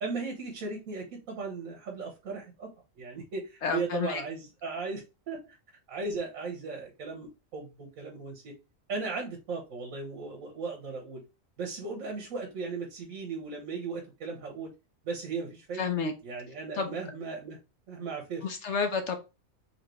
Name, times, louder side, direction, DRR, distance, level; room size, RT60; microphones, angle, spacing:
voice 1, 0.0-2.7 3.0-5.5 5.9-8.5 8.9-11.2 11.6-14.7 15.0-15.8 16.2-17.6 17.9-18.4, right 4 dB, 80° right, 0 dB, 1.3 m, -37 dB
voice 2, 3.6-4.2 15.7-16.1 16.7-17.0 18.4-19.2, left 5 dB, 65° left, 6 dB, 0.9 m, -30 dB
4.1 x 2.8 x 3.1 m, 0.28 s
omnidirectional pair, 1.4 m